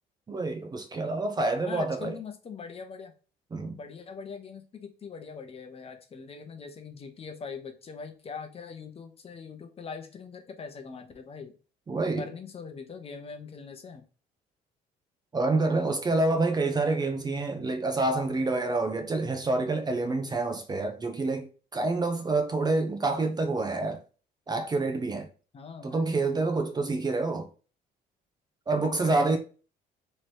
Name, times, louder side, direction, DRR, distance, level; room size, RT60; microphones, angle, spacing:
voice 1, 0.3-2.1 3.5-3.8 11.9-12.3 15.3-24.0 24.5-25.3 25.8-27.5 28.7-29.4, right 3 dB, 25° right, 0.6 m, -27 dB
voice 2, 1.6-3.1 3.7-11.5 12.2-14.0 25.5-26.1 28.8-29.4, left 5 dB, 35° left, 0.8 m, -42 dB
3.2 x 2.9 x 4.4 m
cardioid pair, 110°, 17 cm